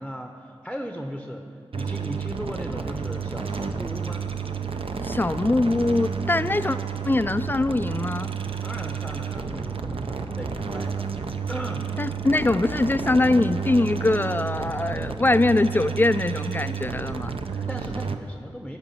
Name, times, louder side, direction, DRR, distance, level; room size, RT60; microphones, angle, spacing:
voice 1, 0.0-4.2 8.6-11.1 11.5-12.0 17.5-18.8, equal, ahead, 4 dB, 0.8 m, -37 dB
sound 1, 1.7-18.2, right 6 dB, 65° right, 0.6 m, -31 dB
voice 2, 5.0-6.8 7.0-8.3 12.0-17.3, left 2 dB, 20° left, 14 dB, 0.3 m, -22 dB
13.5 x 4.8 x 8.7 m, 2.4 s
wide cardioid pair, 60°, 10 cm